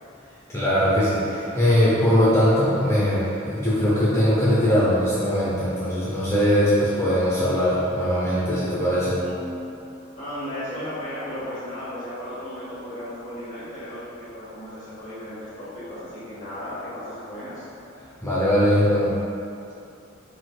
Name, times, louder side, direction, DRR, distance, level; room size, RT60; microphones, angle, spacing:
voice 1, 0.5-9.2 18.2-19.1, equal, 15° left, -9 dB, 0.6 m, -21 dB
voice 2, 8.7-9.7 10.2-17.6, left 1 dB, 35° left, -12 dB, 1.4 m, -35 dB
4.5 x 4.2 x 2.3 m, 2.7 s
head